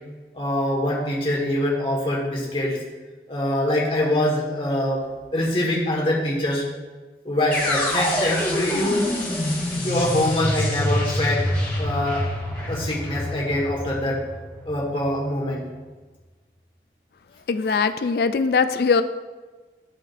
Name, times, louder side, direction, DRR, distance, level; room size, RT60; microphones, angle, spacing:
voice 1, 0.3-2.8 3.3-6.6 7.2-9.1 9.8-11.4 11.8-12.3 12.7-14.2 14.6-15.6, left 1 dB, 30° left, -3 dB, 1.5 m, -24 dB
sound 1, 7.5-15.5, left 1 dB, 10° left, 2.1 m, -26 dB
voice 2, 17.5-19.0, left 5 dB, 60° left, 10 dB, 0.3 m, -21 dB
12.5 x 4.9 x 2.6 m, 1.3 s
head